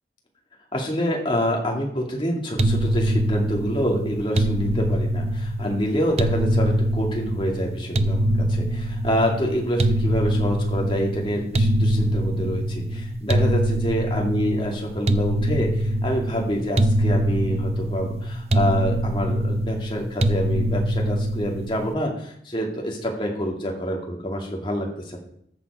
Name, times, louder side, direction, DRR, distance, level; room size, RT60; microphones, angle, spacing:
voice 1, 0.7-25.2, equal, 30° left, 0 dB, 2.4 m, -27 dB
sound 1, 2.6-21.9, right 1 dB, 35° right, 0.6 m, -23 dB
14.0 x 7.3 x 4.9 m, 0.71 s
head